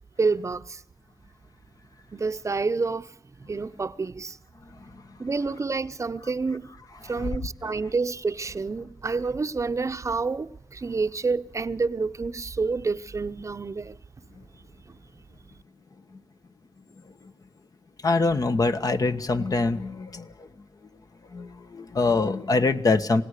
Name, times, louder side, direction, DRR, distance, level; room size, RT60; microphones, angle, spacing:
voice 1, 0.2-0.8 2.1-3.1 3.5-4.4 5.2-6.7 7.0-14.0, right 4 dB, 40° right, 0.8 m, -28 dB
voice 2, 18.0-20.5 21.3-23.2, left 3 dB, 50° left, 1.4 m, -24 dB
27.0 x 17.5 x 6.6 m
wide cardioid pair, 115°, 8 cm